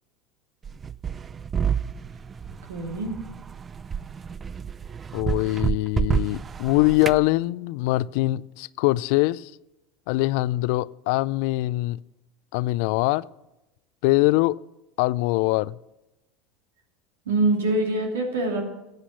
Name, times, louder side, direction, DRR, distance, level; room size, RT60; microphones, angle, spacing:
sound 1, 0.6-7.2, right 7 dB, 25° right, 0.4 m, -29 dB
voice 1, 2.7-3.2 17.3-18.6, right 2 dB, 85° right, 2 dB, 2.6 m, -24 dB
voice 2, 5.1-9.5 10.1-12.0 12.5-13.3 14.0-14.5 15.0-15.8, left 19 dB, 65° left, 20 dB, 0.3 m, -23 dB
13.0 x 8.1 x 5.8 m, 0.96 s
hypercardioid pair, 90°, 0 cm